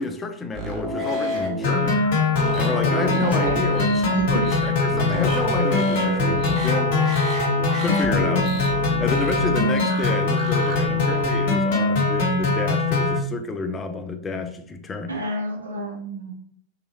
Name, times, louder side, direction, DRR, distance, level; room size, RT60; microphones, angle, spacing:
voice 1, 0.0-2.1 2.5-7.0 7.8-8.5 9.0-15.2, left 4 dB, 20° left, 6 dB, 0.3 m, -29 dB
sound 1, 0.5-11.3, right 2 dB, 5° right, 0.7 m, -31 dB
sound 2, 1.6-13.2, left 3 dB, 50° left, 0.8 m, -22 dB
voice 2, 3.1-3.6 4.1-4.4 15.1-16.3, right 1 dB, 75° right, 0 dB, 0.7 m, -29 dB
2.9 x 2.3 x 2.8 m, 0.63 s
figure-of-eight pair, 90°, 0 cm